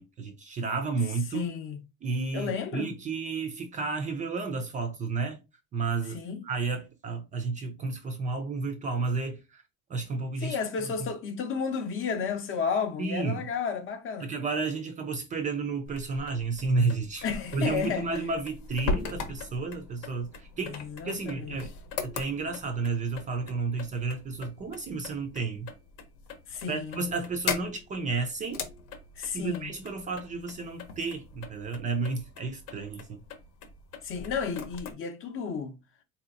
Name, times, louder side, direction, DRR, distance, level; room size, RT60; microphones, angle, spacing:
voice 1, 0.0-1.5 2.0-5.4 5.7-9.6 9.9-10.6 13.0-13.5 14.2-17.2 17.5-21.7 22.0-25.7 26.7-28.7 29.3-33.2, right 4 dB, 25° right, 0.4 m, -32 dB
voice 2, 1.3-1.8 2.3-2.9 6.1-6.4 10.4-14.3 17.2-18.1 20.6-21.6 26.5-27.0 29.2-29.7 34.0-35.8, left 6 dB, 40° left, 0.6 m, -32 dB
sound 1, 15.8-34.9, left 4 dB, 70° left, 0.9 m, -40 dB
4.1 x 2.8 x 2.5 m
cardioid pair, 160°, 32 cm